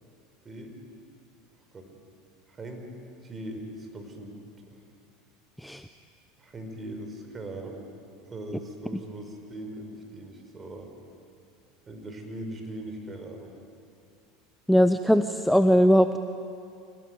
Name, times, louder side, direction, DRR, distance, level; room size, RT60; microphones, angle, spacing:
voice 1, 2.5-2.9 3.2-4.4 4.7-4.8 6.4-7.9 8.3-10.9 11.9-13.5, right 1 dB, 25° right, 4 dB, 5.5 m, -40 dB
voice 2, 14.7-16.2, equal, ahead, 9 dB, 0.9 m, -20 dB
26.0 x 18.5 x 9.6 m, 2.4 s
hypercardioid pair, 85°, 0 cm